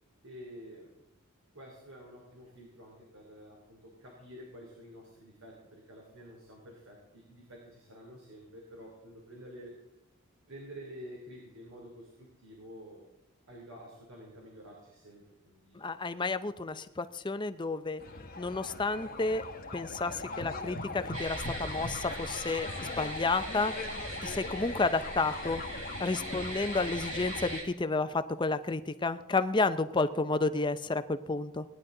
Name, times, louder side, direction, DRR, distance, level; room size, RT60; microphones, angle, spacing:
voice 1, 0.2-0.9 1.5-9.8 10.5-13.1 13.5-15.9, equal, 80° right, -1 dB, 3.1 m, -49 dB
voice 2, 15.8-18.0 18.4-19.4 19.7-23.7 24.2-25.6 26.0-31.6, left 3 dB, 20° left, 11 dB, 0.5 m, -31 dB
sound 1, 18.0-27.6, left 2 dB, 45° left, 1.1 m, -40 dB
sound 2, 21.1-27.6, right 1 dB, 35° right, 4.1 m, -41 dB
17.5 x 10.5 x 3.8 m, 0.93 s
head